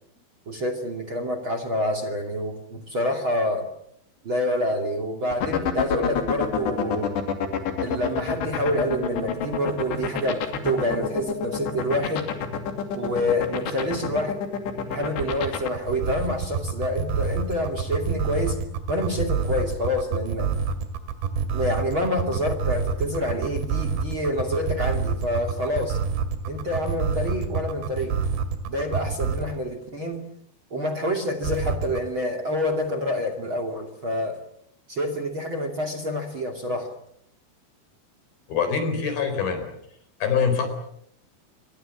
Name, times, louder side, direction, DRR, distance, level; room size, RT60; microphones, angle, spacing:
voice 1, 0.5-3.7 4.2-7.2 7.8-12.3 13.0-14.4 14.9-18.6 18.9-20.5 21.5-26.0 26.5-28.2 28.7-30.3 30.7-34.4 34.9-36.9, left 1 dB, 35° right, 8 dB, 2.8 m, -27 dB
sound 1, 5.3-15.7, left 7 dB, 90° left, 4.8 m, -27 dB
sound 2, 15.2-29.6 31.4-32.0, right 6 dB, 85° right, 4.3 m, -27 dB
voice 2, 38.5-39.6 40.2-40.7, left 6 dB, 65° left, 8 dB, 6.2 m, -24 dB
28.0 x 23.0 x 7.6 m, 0.72 s
omnidirectional pair, 4.8 m